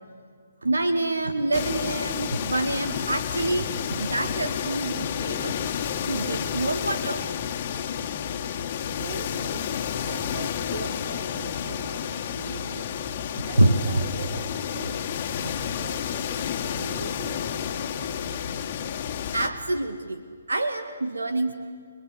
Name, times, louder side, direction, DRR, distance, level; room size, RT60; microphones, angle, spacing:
voice 1, 0.6-5.6 6.1-7.2 13.3-13.7 15.4-15.6 19.3-20.2 20.5-21.5, right 2 dB, 90° right, 9 dB, 1.9 m, -26 dB
sound 1, 1.5-19.5, left 8 dB, 40° left, 1.8 m, -30 dB
voice 2, 9.0-12.8 13.5-15.1 15.7-18.5, right 4 dB, 60° right, 10 dB, 2.5 m, -42 dB
29.0 x 22.5 x 8.1 m, 2.1 s
hypercardioid pair, 145°, 0 cm